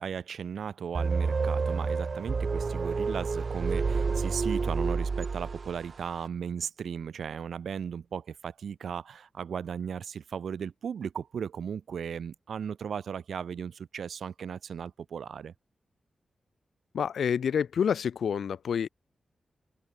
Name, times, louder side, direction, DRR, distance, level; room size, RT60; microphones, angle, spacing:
voice 1, 0.0-15.5, right 7 dB, 80° right, 6.1 m, -36 dB
sound 1, 0.9-5.9, right 4 dB, 45° right, 1.7 m, -29 dB
voice 2, 16.9-18.9, left 7 dB, 85° left, 7.5 m, -28 dB
wide cardioid pair, 125°, 0 cm